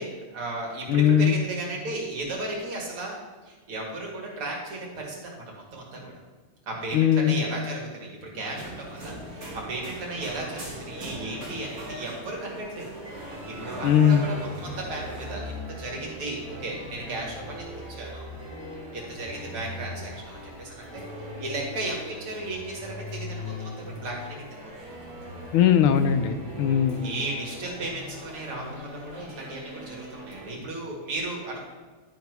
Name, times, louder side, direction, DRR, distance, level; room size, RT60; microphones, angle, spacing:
voice 1, 0.0-3.2 3.4-6.2 6.7-12.9 13.2-18.3 18.9-21.0 21.4-24.6 27.0-31.6, right 2 dB, 85° right, -2 dB, 3.0 m, -35 dB
voice 2, 0.9-1.4 6.9-7.4 13.8-14.3 25.5-27.0, left 9 dB, 80° left, 10 dB, 1.5 m, -20 dB
sound 1, 8.5-15.4, right 1 dB, 40° right, 2.7 m, -40 dB
sound 2, 13.0-30.5, left 1 dB, 10° right, 2.3 m, -40 dB
11.5 x 5.3 x 4.7 m, 1.4 s
omnidirectional pair, 2.4 m